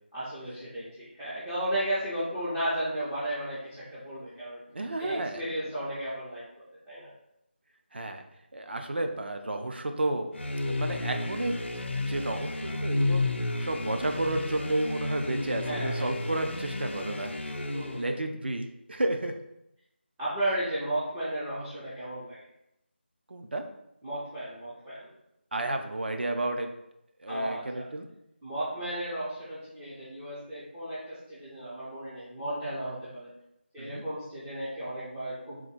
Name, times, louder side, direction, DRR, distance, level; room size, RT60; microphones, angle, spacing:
voice 1, 0.1-4.6 5.0-6.4 6.7-7.1 15.6-16.0 17.7-18.1 20.2-22.4 24.0-25.1 27.3-27.8 28.4-33.3 33.7-35.6, right 1 dB, 5° right, -13 dB, 0.3 m, -34 dB
voice 2, 4.7-5.4 7.9-8.2 8.5-10.3 10.6-13.2 13.6-17.3 17.9-19.3 23.3-23.6 25.5-26.7 27.2-28.1 33.8-34.0, right 1 dB, 60° right, 5 dB, 0.6 m, -31 dB
sound 1, 10.3-18.2, left 2 dB, 80° left, 0.6 m, -32 dB
3.8 x 2.6 x 4.5 m, 0.83 s
figure-of-eight pair, 165°, 6 cm